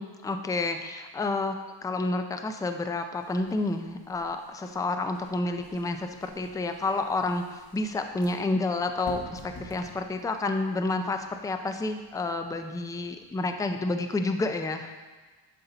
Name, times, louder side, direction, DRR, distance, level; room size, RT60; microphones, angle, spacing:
voice 1, 0.0-1.6 1.8-14.9, left 2 dB, 10° left, 6 dB, 0.3 m, -30 dB
sound 1, 3.2-14.0, left 1 dB, 65° left, 1.7 m, -52 dB
11.0 x 4.0 x 3.9 m, 1.3 s
cardioid pair, 105°, 48 cm